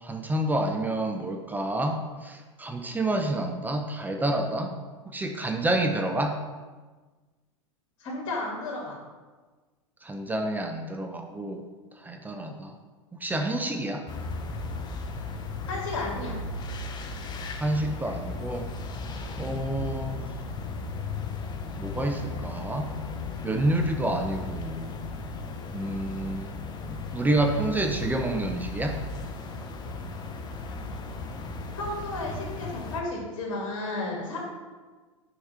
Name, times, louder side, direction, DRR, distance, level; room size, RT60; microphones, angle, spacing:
voice 1, 0.0-4.8 5.1-6.4 10.0-11.6 12.0-12.7 13.2-14.0 17.6-18.7 19.4-20.2 21.8-22.9 23.4-24.9 25.7-26.5 26.9-29.0, right 1 dB, 10° right, 4 dB, 0.6 m, -28 dB
voice 2, 8.0-9.0 15.7-16.3 31.8-34.4, left 2 dB, 55° left, -3 dB, 2.6 m, -33 dB
sound 1, 14.1-33.0, left 3 dB, 25° left, 0.9 m, -36 dB
6.5 x 4.8 x 5.6 m, 1.3 s
figure-of-eight pair, 95°, 17 cm